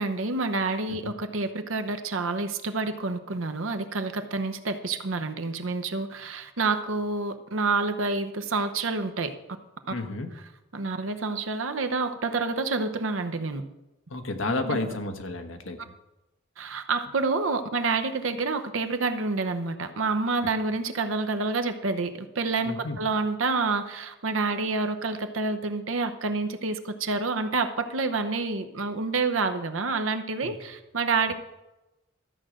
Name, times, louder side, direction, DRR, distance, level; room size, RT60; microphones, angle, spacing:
voice 1, 0.0-9.3 10.7-13.6 14.6-14.8 16.6-31.3, right 3 dB, 75° right, 8 dB, 0.9 m, -28 dB
voice 2, 9.9-10.3 14.1-15.8 22.6-23.0 30.4-30.5, left 2 dB, 80° left, 6 dB, 1.2 m, -31 dB
13.0 x 5.1 x 7.7 m, 1.0 s
head